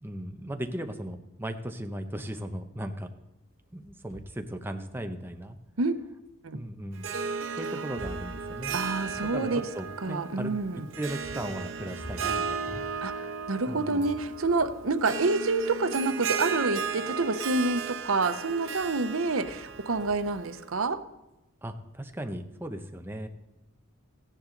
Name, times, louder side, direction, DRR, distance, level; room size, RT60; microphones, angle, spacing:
voice 1, 0.0-3.1 3.7-5.6 6.5-7.1 7.6-8.8 9.3-9.5 9.7-10.5 11.0-12.8 13.7-14.1 21.6-23.3, right 1 dB, 10° right, 5 dB, 0.8 m, -37 dB
sound 1, 3.5-4.4 5.0-5.1 6.0-6.1 7.9-13.7 14.0-15.0 16.2-16.3 16.8-17.2 17.6-18.4 18.7-21.1, equal, 40° left, 3.1 m, -48 dB
Harp, 6.9-20.7, right 6 dB, 70° right, 1.1 m, -35 dB
voice 2, 8.7-9.7 10.0-10.9 13.0-21.0, right 3 dB, 90° right, 11 dB, 0.8 m, -28 dB
15.5 x 10.0 x 3.9 m, 0.96 s
head